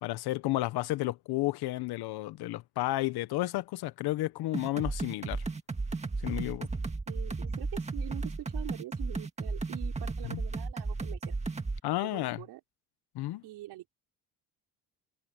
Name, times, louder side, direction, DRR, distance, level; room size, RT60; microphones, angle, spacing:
voice 1, 0.0-5.4 6.2-6.7 10.2-10.4 11.8-12.4 13.1-13.4, left 17 dB, 75° left, 1.0 m, -32 dB
sound 1, 4.5-11.8, right 3 dB, 15° right, 2.0 m, -34 dB
voice 2, 7.1-11.4 12.0-12.6 13.4-13.9, right 16 dB, 80° right, 4.9 m, -45 dB
cardioid pair, 105°, 39 cm